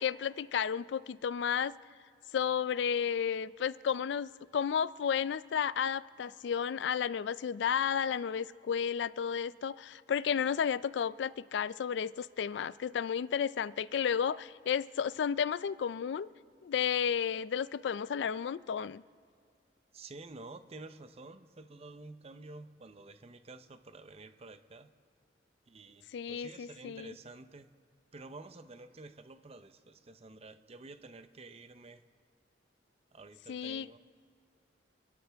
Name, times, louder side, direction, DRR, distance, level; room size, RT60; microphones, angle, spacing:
voice 1, 0.0-1.7 2.3-16.3 16.6-19.0 26.1-27.1 33.5-34.0, left 7 dB, 70° left, 18 dB, 0.3 m, -32 dB
voice 2, 19.9-24.9 25.7-27.7 28.1-32.0 33.1-34.0, right 2 dB, 35° right, 11 dB, 0.6 m, -50 dB
30.0 x 13.0 x 3.5 m, 2.3 s
head